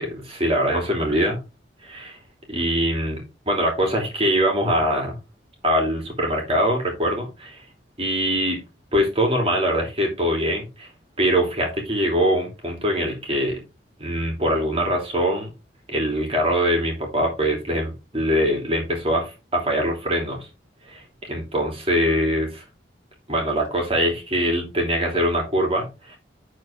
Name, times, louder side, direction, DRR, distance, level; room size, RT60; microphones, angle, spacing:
voice 1, 0.0-1.4 1.8-2.1 2.5-5.2 5.6-7.6 8.0-8.6 8.9-10.9 11.2-13.6 14.0-15.5 15.9-20.5 20.9-22.6 23.3-25.9, equal, 35° right, 1 dB, 2.9 m, -23 dB
11.0 x 4.4 x 3.5 m, 0.27 s
head